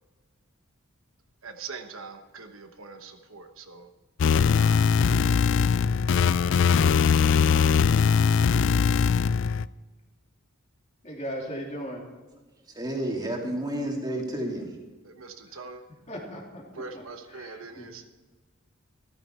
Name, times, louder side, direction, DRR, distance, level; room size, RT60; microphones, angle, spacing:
voice 1, 1.4-3.9 4.3-4.9 15.0-15.8 16.7-18.1, right 4 dB, 70° right, 6 dB, 1.2 m, -42 dB
sound 1, 4.2-9.7, left 6 dB, 60° left, 0.4 m, -21 dB
voice 2, 11.0-12.0 15.5-15.6 16.1-17.0 17.3-17.9, equal, 30° left, -1 dB, 3.1 m, -38 dB
voice 3, 12.7-14.7, right 1 dB, 20° right, 0 dB, 2.6 m, -30 dB
14.0 x 14.0 x 4.5 m, 1.3 s
head